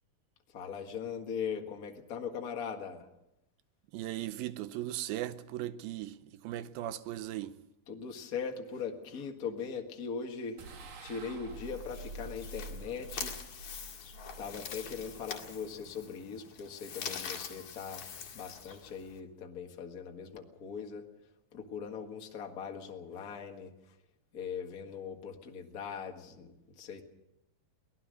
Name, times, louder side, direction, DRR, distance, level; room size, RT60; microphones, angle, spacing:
voice 1, 0.5-3.1 7.9-10.6 11.0-13.4 14.4-18.1 18.3-21.1 21.5-23.9 24.3-27.0, left 6 dB, 35° left, 1.4 m, -40 dB
voice 2, 3.9-7.6, right 13 dB, 85° right, 2.7 m, -38 dB
sound 1, 10.6-15.9, right 2 dB, 65° right, 3.5 m, -48 dB
sound 2, 11.5-19.2, left 7 dB, 60° left, 3.2 m, -44 dB
23.0 x 18.0 x 6.4 m
omnidirectional pair, 4.1 m